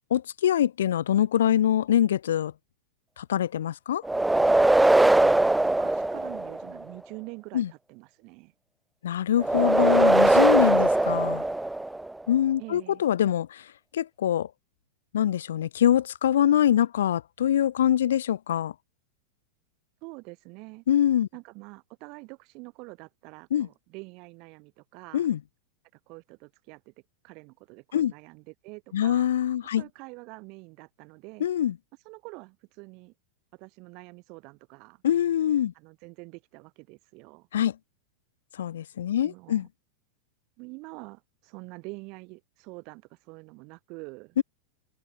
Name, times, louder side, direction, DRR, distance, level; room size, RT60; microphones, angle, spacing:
voice 1, 0.1-2.5 3.2-4.0 7.5-7.7 9.0-11.4 12.3-13.6 13.9-14.5 15.1-18.7 20.9-21.3 23.5-23.7 25.1-25.4 27.9-28.1 28.9-29.8 31.4-31.7 35.0-35.7 37.5-37.7 38.6-39.7 44.4-44.5, left 10 dB, 60° left, 0.5 m, -24 dB
sound 1, 4.0-6.8 9.4-12.1, right 2 dB, 5° right, 0.3 m, -21 dB
voice 2, 5.6-8.5 12.6-13.0 20.0-20.8 21.3-25.3 26.1-26.9 27.2-29.3 29.8-31.5 32.0-33.1 33.5-35.0 35.7-37.5 39.2-39.6 40.6-44.4, right 28 dB, 45° right, 3.1 m, -45 dB
figure-of-eight pair, 90°, 0 cm